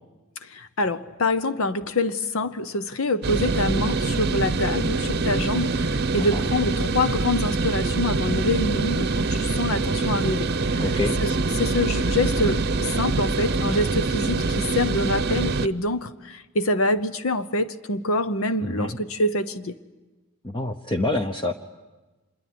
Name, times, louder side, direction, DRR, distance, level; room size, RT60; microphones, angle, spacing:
voice 1, 0.4-10.8 11.2-19.7, left 1 dB, 70° left, 11 dB, 0.9 m, -26 dB
sound 1, 3.2-15.7, right 3 dB, 50° right, 0.8 m, -24 dB
voice 2, 10.8-11.1 18.6-19.0 20.4-21.5, left 2 dB, 25° left, 5 dB, 0.9 m, -27 dB
26.5 x 22.5 x 9.4 m, 1.2 s
head